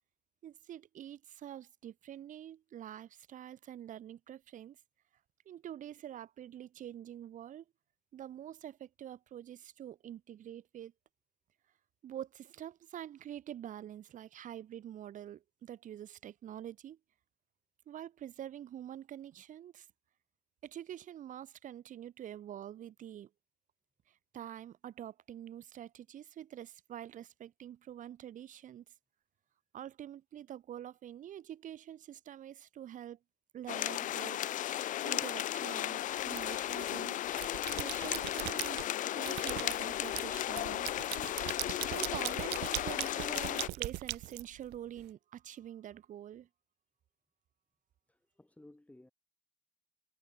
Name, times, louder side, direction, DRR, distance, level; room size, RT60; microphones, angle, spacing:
voice 1, 0.4-4.8 5.5-7.6 8.1-10.9 12.0-17.0 17.9-19.9 20.6-23.3 24.1-28.8 29.7-33.2 33.5-37.2 37.7-38.8 39.2-41.5 41.8-46.5, right 11 dB, 50° right, 0.8 m, -46 dB
sound 1, 33.7-43.7, left 12 dB, 50° left, 0.4 m, -35 dB
sound 2, 36.3-36.9 37.3-38.9 39.3-45.0, right 20 dB, 85° right, 0.9 m, -39 dB
voice 2, 48.1-49.1, left 1 dB, 10° left, 3.2 m, -58 dB
cardioid pair, 110°, 17 cm